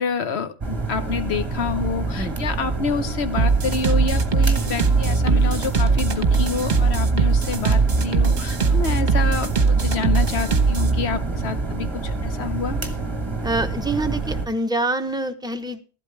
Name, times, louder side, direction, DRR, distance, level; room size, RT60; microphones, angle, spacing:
voice 1, 0.0-12.8, left 5 dB, 70° left, 1.3 m, -28 dB
sound 1, 0.6-14.5, right 3 dB, 25° right, 1.5 m, -27 dB
sound 2, 3.4-11.0, right 4 dB, 45° right, 1.2 m, -20 dB
voice 2, 13.4-15.8, right 2 dB, 5° right, 0.8 m, -25 dB
14.5 x 12.0 x 3.3 m
omnidirectional pair, 1.1 m